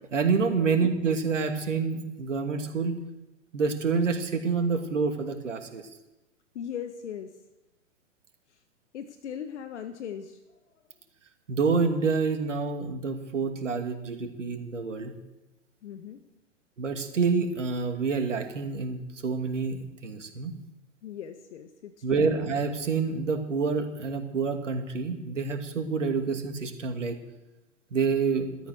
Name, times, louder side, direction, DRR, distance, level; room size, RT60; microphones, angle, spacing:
voice 1, 0.1-3.0 3.5-5.8 11.5-15.1 16.8-20.5 22.0-27.2 27.9-28.5, right 5 dB, 85° right, 5 dB, 2.6 m, -27 dB
voice 2, 6.5-7.3 8.9-10.4 15.8-16.2 21.0-22.3, left 8 dB, 70° left, 9 dB, 1.4 m, -39 dB
16.0 x 13.0 x 6.5 m, 1.0 s
hypercardioid pair, 110°, 36 cm